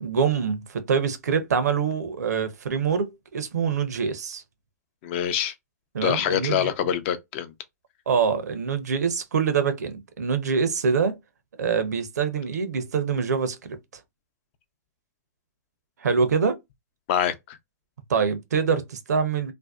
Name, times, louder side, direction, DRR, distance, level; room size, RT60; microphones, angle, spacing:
voice 1, 0.0-4.4 5.9-6.7 8.1-11.2 11.6-13.8 16.0-16.6 18.1-19.5, right 6 dB, 85° right, 0.6 m, -25 dB
voice 2, 5.0-5.5 6.0-7.5 17.1-17.6, left 9 dB, 45° left, 0.5 m, -25 dB
2.5 x 2.1 x 2.3 m
hypercardioid pair, 125°, 9 cm